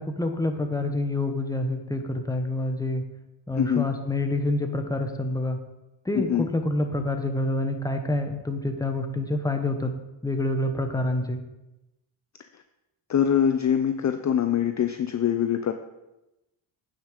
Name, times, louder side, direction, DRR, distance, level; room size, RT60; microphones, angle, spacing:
voice 1, 0.0-3.0 3.5-5.6 6.0-9.9 10.2-11.4, left 2 dB, 5° left, 5 dB, 1.1 m, -27 dB
voice 2, 3.6-3.9 6.1-6.4 13.1-15.7, left 9 dB, 35° left, 8 dB, 0.6 m, -23 dB
9.5 x 6.4 x 5.2 m, 0.98 s
cardioid pair, 95°, 49 cm